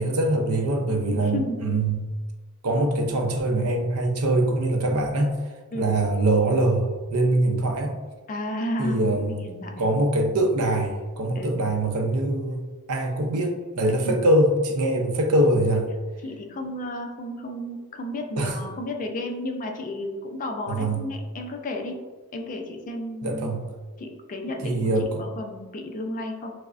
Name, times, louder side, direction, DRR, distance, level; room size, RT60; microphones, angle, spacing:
voice 1, 0.0-2.1 2.6-5.4 5.7-8.0 8.8-9.4 9.8-12.6 12.9-15.9 18.4-18.6 20.7-21.1 23.2-23.7 24.6-25.2, right 1 dB, 70° right, 3 dB, 0.5 m, -23 dB
voice 2, 1.1-1.6 5.7-5.9 8.3-9.9 11.4-11.7 14.0-14.2 16.2-21.9 22.3-23.5 24.0-26.5, left 1 dB, 35° left, 3 dB, 0.4 m, -33 dB
4.7 x 2.0 x 2.4 m, 1.3 s
head